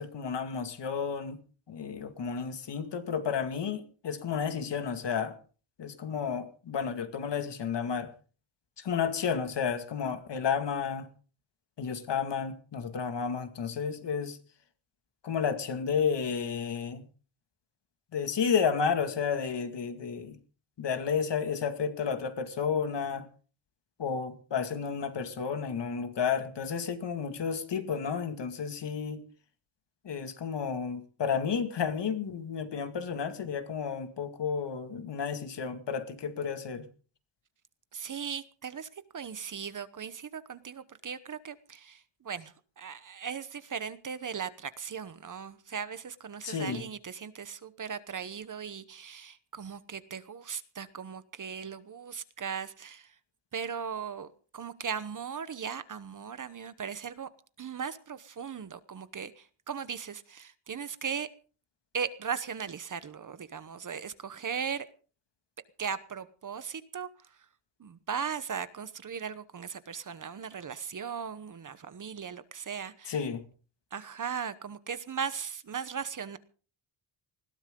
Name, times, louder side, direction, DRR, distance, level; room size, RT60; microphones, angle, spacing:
voice 1, 0.0-1.4 1.7-5.3 5.8-8.1 8.8-11.1 11.8-14.4 15.2-17.1 18.1-20.4 20.8-23.3 24.0-29.2 30.0-36.9 46.4-46.9 73.1-73.4, left 6 dB, 60° left, 2.3 m, -32 dB
voice 2, 37.9-53.1 53.5-54.3 54.5-57.3 57.6-61.3 61.9-64.9 65.8-67.4 67.8-73.2 73.9-76.4, right 7 dB, 40° right, 1.0 m, -38 dB
20.5 x 16.5 x 3.8 m
wide cardioid pair, 155°, 48 cm